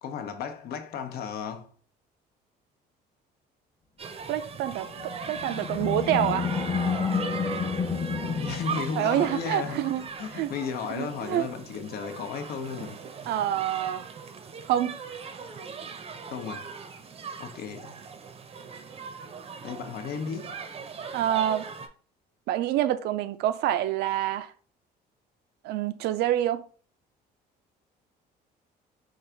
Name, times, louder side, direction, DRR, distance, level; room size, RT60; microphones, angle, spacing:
voice 1, 0.0-1.7 8.3-13.0 16.3-16.7 17.4-18.0 19.6-20.6, left 6 dB, 65° left, 0.8 m, -34 dB
sound 1, 4.0-21.9, right 5 dB, 35° right, 0.6 m, -40 dB
voice 2, 4.3-4.9 5.3-6.5 9.0-10.0 10.3-10.5 10.9-11.5 13.3-14.1 14.7-15.0 21.1-21.6 22.5-24.5 25.6-26.7, right 12 dB, 80° right, 0.5 m, -26 dB
Animal, 4.9-9.4, left 5 dB, 20° left, 0.7 m, -30 dB
3.9 x 2.5 x 4.5 m
cardioid pair, 110°, 17 cm